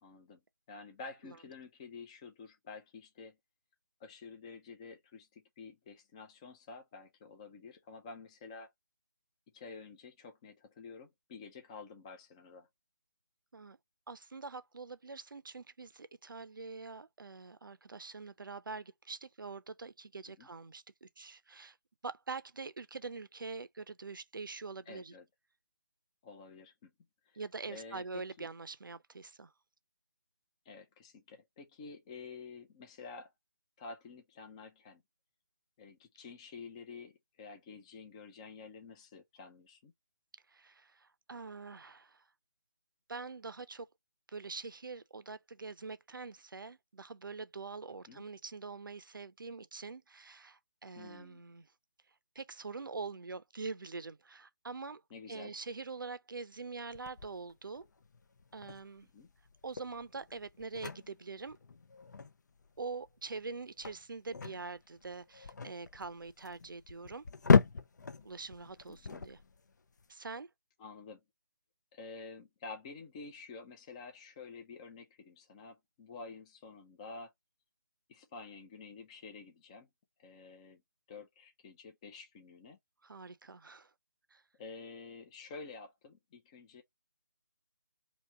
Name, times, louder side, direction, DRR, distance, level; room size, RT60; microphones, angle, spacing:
voice 1, 0.0-0.4 0.7-3.4 4.0-8.7 9.5-12.7 20.4-20.5 24.9-25.2 26.2-26.9 27.3-27.4 27.7-28.5 30.7-33.3 33.8-35.0 35.8-39.9 48.1-48.2 51.0-51.4 55.1-55.5 59.1-59.3 68.9-69.3 70.8-71.2 71.9-77.3 78.1-79.9 80.2-80.8 81.1-82.8 84.6-86.8, left 4 dB, 15° left, 0.5 m, -50 dB
voice 2, 14.1-21.8 22.0-25.1 27.3-29.5 40.5-42.2 43.1-43.9 44.3-51.7 52.3-55.0 55.3-57.8 58.5-59.1 59.6-61.6 62.8-67.2 68.2-69.4 70.1-70.5 83.0-83.9 84.3-84.4, right 4 dB, 80° right, 0.6 m, -44 dB
sound 1, 56.9-70.0, left 5 dB, 60° left, 0.6 m, -35 dB
2.9 x 2.8 x 4.5 m
figure-of-eight pair, 160°, 11 cm